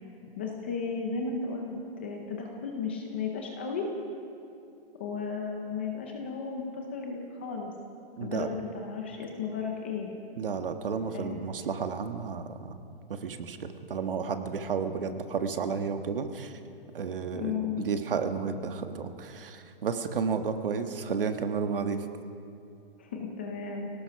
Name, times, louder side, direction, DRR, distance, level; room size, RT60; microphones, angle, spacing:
voice 1, 0.4-3.9 5.0-7.7 8.2-10.1 11.1-11.3 17.3-17.9 23.0-23.9, left 5 dB, 10° left, 1 dB, 0.6 m, -34 dB
voice 2, 8.2-8.5 10.4-12.7 13.1-16.5 16.9-22.1, right 5 dB, 60° right, 7 dB, 1.5 m, -32 dB
26.0 x 18.0 x 5.8 m, 2.6 s
hypercardioid pair, 180°, 31 cm